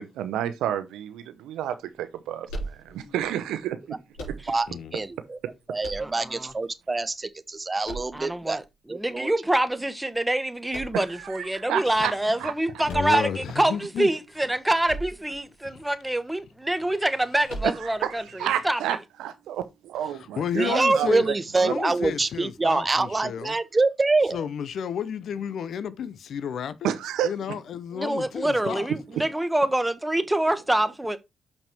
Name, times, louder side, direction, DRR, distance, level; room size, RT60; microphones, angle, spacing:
voice 1, 0.0-4.0 4.3-4.4 10.9-11.0 11.3-12.1 12.4-12.5 17.8-18.1 18.4-21.7 26.8-27.3, right 10 dB, 80° right, 0.8 m, -30 dB
sound 1, 2.5-3.3 4.1-4.8 5.8-6.5 7.8-8.6 10.7-11.3 12.8-13.7 14.8-15.4 15.7-15.8 17.5-18.1, right 1 dB, 85° left, 4.0 m, -38 dB
voice 2, 4.5-5.4 5.7-8.6 8.9-9.3 20.5-24.5, right 3 dB, 30° right, 0.9 m, -25 dB
voice 3, 6.0-6.5 8.1-8.6 8.9-18.8 27.9-31.2, right 1 dB, 10° right, 1.3 m, -26 dB
voice 4, 12.9-14.1 15.7-15.8 20.2-21.3 21.6-23.5 24.3-26.9 27.2-28.9, left 8 dB, 70° left, 0.8 m, -32 dB
6.6 x 5.9 x 4.4 m
supercardioid pair, 55°, 0 cm